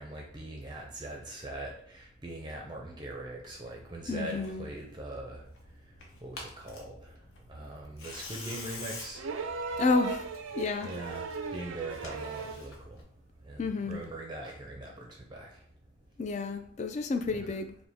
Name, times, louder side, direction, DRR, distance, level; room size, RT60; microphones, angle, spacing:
voice 1, 0.0-5.4 6.2-7.1 7.5-9.2 10.8-13.0 13.4-15.5 17.3-17.5, right 2 dB, 20° right, 0.5 m, -41 dB
Tearing, 3.4-13.0, left 2 dB, 85° left, 0.9 m, -48 dB
voice 2, 4.1-4.7 9.8-10.3 10.5-10.9 13.6-14.0 16.2-17.8, left 3 dB, 35° left, 0.3 m, -30 dB
sound 1, 9.1-12.7 14.0-14.1, right 4 dB, 85° right, 0.4 m, -37 dB
4.9 x 2.1 x 3.4 m
head